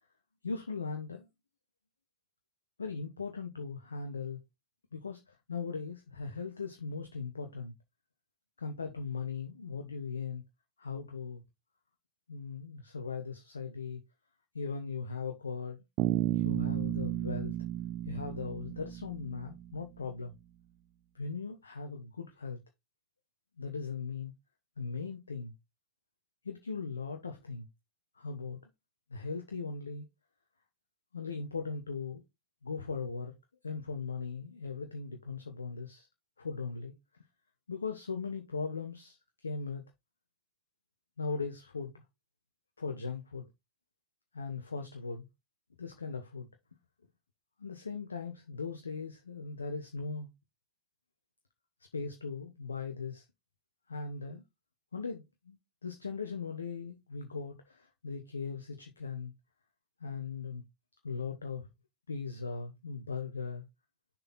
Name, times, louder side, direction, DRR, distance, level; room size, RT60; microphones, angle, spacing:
voice 1, 0.4-1.3 2.8-4.4 4.9-7.7 8.6-10.4 10.8-11.4 12.3-14.0 14.5-15.8 16.3-17.5 18.1-20.3 21.1-22.6 23.6-24.3 24.8-25.5 26.4-27.7 28.2-28.6 29.1-30.0 31.1-32.2 32.6-33.3 33.6-36.1 36.4-36.9 37.7-39.8 41.2-41.9 42.8-43.4 44.3-45.3 45.8-46.5 47.6-50.3 51.9-53.2 53.9-54.4 54.9-55.6 55.8-59.3 60.0-60.6 61.0-61.7 62.1-63.6, left 5 dB, 75° left, 1.1 m, -39 dB
Bass guitar, 16.0-19.9, right 13 dB, 35° right, 0.5 m, -33 dB
6.7 x 4.4 x 3.9 m
figure-of-eight pair, 90°, 0 cm